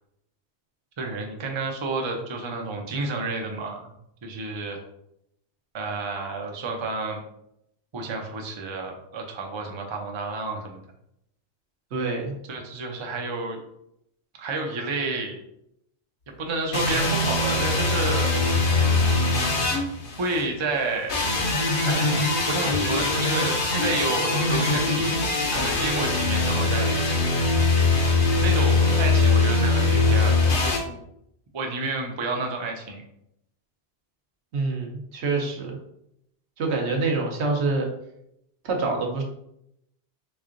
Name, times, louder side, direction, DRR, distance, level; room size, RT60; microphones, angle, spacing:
voice 1, 1.0-3.9 4.2-4.8 5.7-7.2 7.9-10.8 12.5-13.6 14.4-15.4 16.4-18.3 20.2-21.2 21.9-27.3 28.4-31.0 31.5-33.0, right 3 dB, 40° right, 2 dB, 0.4 m, -30 dB
voice 2, 11.9-12.4 34.5-35.8 36.6-37.9 38.6-39.2, right 3 dB, 75° right, 1 dB, 1.0 m, -26 dB
sound 1, 16.7-20.5 21.1-30.8, left 3 dB, 55° left, 0.8 m, -22 dB
3.6 x 3.1 x 2.5 m, 0.77 s
omnidirectional pair, 1.1 m